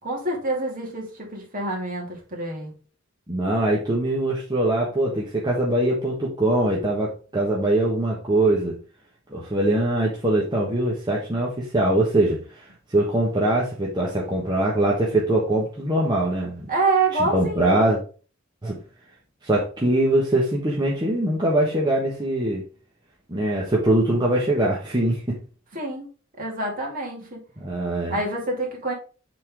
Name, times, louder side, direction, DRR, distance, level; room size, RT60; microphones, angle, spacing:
voice 1, 0.0-2.7 16.7-17.9 25.7-26.1 26.4-27.4 28.1-28.9, right 3 dB, 45° right, 2.5 m, -26 dB
voice 2, 3.3-8.7 9.3-12.6 12.9-16.7 17.2-18.0 18.6-18.8 19.4-22.6 23.3-25.4 27.6-28.2, right 1 dB, 20° right, 1.2 m, -22 dB
7.5 x 3.8 x 3.6 m
head